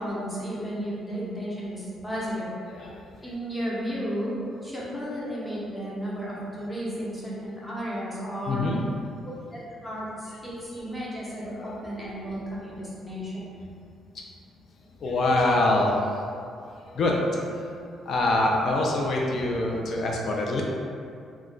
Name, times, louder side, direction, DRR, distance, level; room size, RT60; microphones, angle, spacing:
voice 1, 0.0-2.5 3.2-8.7 9.5-13.6, equal, 10° left, -7 dB, 0.9 m, -33 dB
voice 2, 2.7-3.0 8.5-8.8 11.4-11.9 15.0-16.2 16.9-17.6 18.1-20.6, left 2 dB, 60° left, -1 dB, 0.4 m, -25 dB
2.3 x 2.1 x 3.6 m, 2.3 s
cardioid pair, 90°, 0 cm